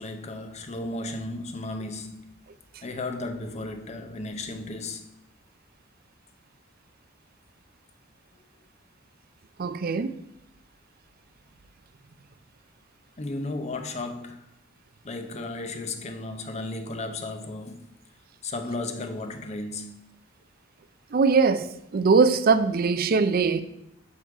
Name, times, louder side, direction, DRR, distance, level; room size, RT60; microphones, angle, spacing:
voice 1, 0.0-2.3 2.8-5.1 13.2-14.4 15.0-17.9 18.4-20.1, left 2 dB, 35° left, 0.7 m, -34 dB
voice 2, 9.6-10.1 21.1-23.6, right 4 dB, 50° right, 0.5 m, -21 dB
6.3 x 5.5 x 4.8 m
head